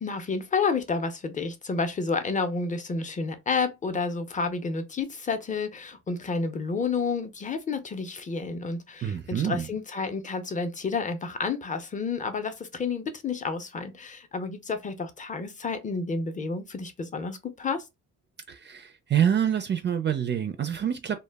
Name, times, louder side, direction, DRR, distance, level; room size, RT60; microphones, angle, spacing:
voice 1, 0.0-17.8, left 4 dB, 25° left, 0.6 m, -30 dB
voice 2, 9.0-9.7 18.5-21.2, right 9 dB, 35° right, 0.4 m, -26 dB
2.2 x 2.0 x 3.3 m
cardioid pair, 90°, 30 cm